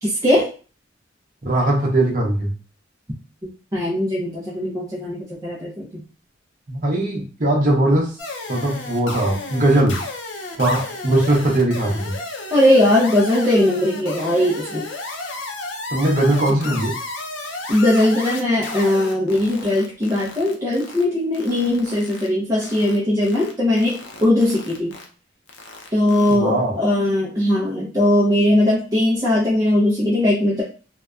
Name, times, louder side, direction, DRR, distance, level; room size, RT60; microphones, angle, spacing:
voice 1, 0.0-0.5 3.4-6.0 12.5-14.8 16.6-16.8 17.7-24.9 25.9-30.6, left 1 dB, 20° right, -6 dB, 0.6 m, -19 dB
voice 2, 1.4-2.5 6.7-8.1 8.5-10.0 10.6-12.1 15.9-16.9 26.3-26.7, right 1 dB, 45° right, -1 dB, 0.8 m, -19 dB
sound 1, 8.2-21.0 21.3-22.3 22.6-23.0 23.2-23.5 23.8-25.0 25.5-26.4, left 3 dB, 75° left, 0.5 m, -33 dB
2.7 x 2.2 x 2.3 m, 0.37 s
head